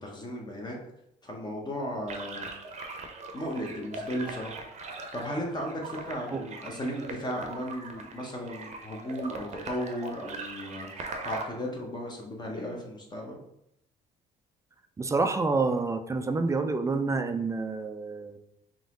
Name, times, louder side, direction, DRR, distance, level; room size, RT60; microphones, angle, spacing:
voice 1, 0.0-0.7 1.2-2.5 3.3-4.6 5.1-13.4, equal, 25° left, -1 dB, 1.0 m, -35 dB
sound 1, 2.1-11.5, right 3 dB, 40° right, 0.7 m, -41 dB
voice 2, 15.0-18.4, right 3 dB, 15° right, 7 dB, 0.4 m, -28 dB
4.0 x 2.9 x 3.7 m, 0.78 s
cardioid pair, 110°, 17 cm